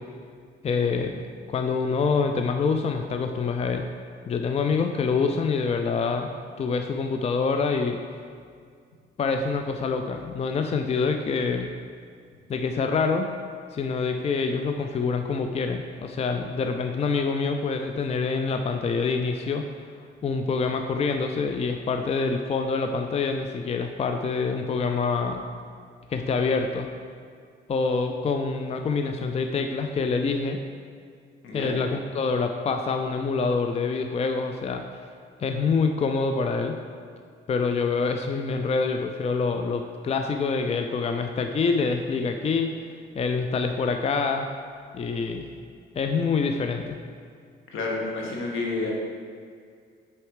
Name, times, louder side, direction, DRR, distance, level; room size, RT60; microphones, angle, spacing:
voice 1, 0.6-3.9 4.3-8.0 9.2-11.7 12.5-13.3 13.7-19.6 20.2-25.4 26.1-26.9 27.7-30.6 31.5-34.9 35.4-36.8 37.5-42.7 43.2-44.5 44.9-45.5 46.0-47.0, left 4 dB, 30° left, 5 dB, 0.4 m, -26 dB
voice 2, 47.7-48.9, left 3 dB, 80° left, -2 dB, 1.4 m, -29 dB
6.4 x 4.4 x 4.8 m, 2.2 s
cardioid pair, 90°, 20 cm